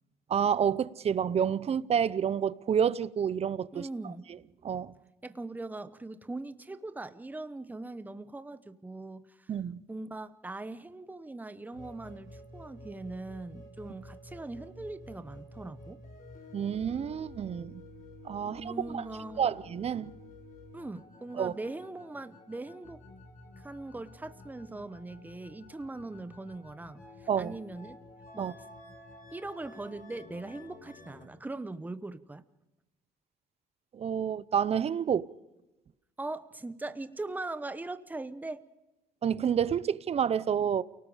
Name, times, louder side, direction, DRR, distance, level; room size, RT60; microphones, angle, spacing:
voice 1, 0.3-3.9 4.6-4.9 9.5-9.8 16.5-17.9 18.2-19.0 19.4-20.1 21.4-21.5 27.3-27.5 28.4-28.5 33.9-35.3 39.2-40.8, right 8 dB, 35° right, 0.7 m, -29 dB
voice 2, 3.7-4.3 5.2-9.5 9.9-16.0 18.4-19.6 20.7-23.0 23.6-28.0 28.3-28.5 29.3-32.4 36.2-38.6, right 2 dB, 10° right, 0.9 m, -41 dB
sound 1, 11.7-31.2, left 2 dB, 55° left, 5.0 m, -51 dB
29.0 x 19.0 x 5.0 m
cardioid pair, 110°, 17 cm